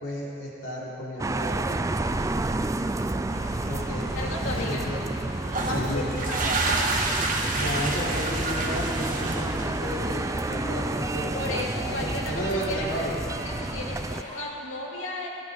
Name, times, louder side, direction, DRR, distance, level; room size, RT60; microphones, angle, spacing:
voice 1, 0.0-1.8 3.7-5.0 5.7-6.4 7.5-10.2 10.5-11.4 11.7-13.2, equal, 65° left, -5 dB, 3.4 m, -33 dB
sound 1, 1.2-14.2, right 2 dB, 15° right, 0.4 m, -30 dB
sound 2, 3.3-14.4, left 1 dB, 35° left, 2.2 m, -44 dB
voice 2, 4.2-4.9 5.6-7.0 11.3-13.1 13.4-15.3, left 2 dB, 90° left, -2 dB, 2.6 m, -35 dB
sound 3, 5.4-10.0, right 3 dB, 45° right, 1.5 m, -29 dB
17.5 x 16.5 x 4.0 m, 2.6 s
head